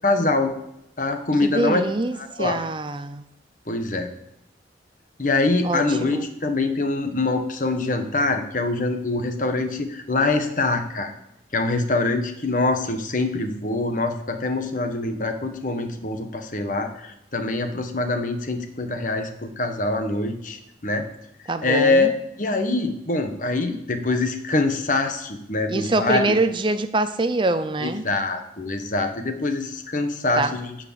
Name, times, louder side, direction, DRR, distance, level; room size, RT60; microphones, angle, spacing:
voice 1, 0.0-0.5 1.0-1.8 2.2-2.6 3.7-4.1 5.2-11.1 11.5-21.0 21.6-22.1 22.4-26.3 27.8-30.7, left 2 dB, 45° left, 6 dB, 1.3 m, -24 dB
voice 2, 1.4-3.2 5.6-6.3 21.5-22.1 25.7-28.0 30.3-30.5, right 2 dB, 25° right, 11 dB, 0.5 m, -24 dB
13.0 x 5.0 x 8.5 m, 0.83 s
head